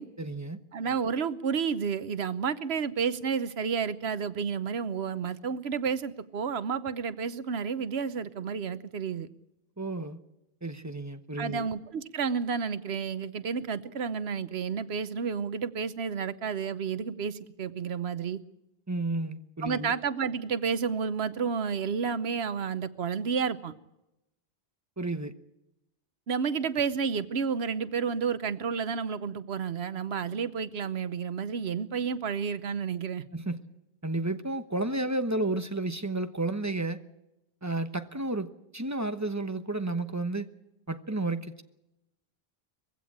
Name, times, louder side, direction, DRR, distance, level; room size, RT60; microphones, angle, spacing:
voice 1, 0.2-0.6 9.8-10.2 10.6-11.7 18.9-19.9 25.0-25.3 33.3-33.6 34.0-37.0 37.6-40.5 40.9-41.6, right 2 dB, 15° right, 1.0 m, -32 dB
voice 2, 0.7-9.3 11.4-18.4 19.6-23.7 26.3-33.2, right 6 dB, 80° right, 1.2 m, -31 dB
22.0 x 16.0 x 8.7 m
omnidirectional pair, 1.1 m